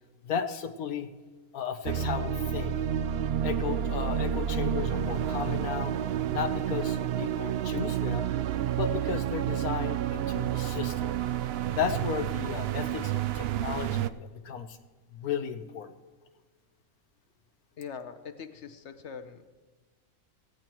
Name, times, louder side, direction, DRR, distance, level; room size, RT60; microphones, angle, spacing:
voice 1, 0.2-1.1 1.5-2.7 3.4-5.9 6.3-8.3 8.8-11.2 11.7-14.8 15.1-15.9, left 7 dB, 75° left, 9 dB, 1.4 m, -34 dB
sound 1, 1.8-14.1, right 10 dB, 80° right, 0.5 m, -30 dB
voice 2, 17.8-19.5, left 6 dB, 50° left, 8 dB, 1.2 m, -42 dB
18.5 x 16.0 x 3.0 m, 1.4 s
omnidirectional pair, 1.6 m